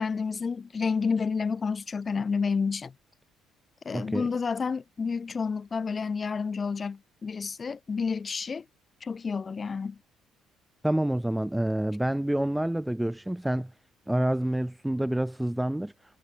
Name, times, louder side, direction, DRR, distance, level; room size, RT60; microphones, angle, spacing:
voice 1, 0.0-2.9 3.9-8.6 9.0-10.0, left 5 dB, 20° left, 1.9 m, -30 dB
voice 2, 3.9-4.3 10.8-13.7 14.1-15.9, right 1 dB, 5° right, 1.3 m, -28 dB
cardioid pair, 175°, 0 cm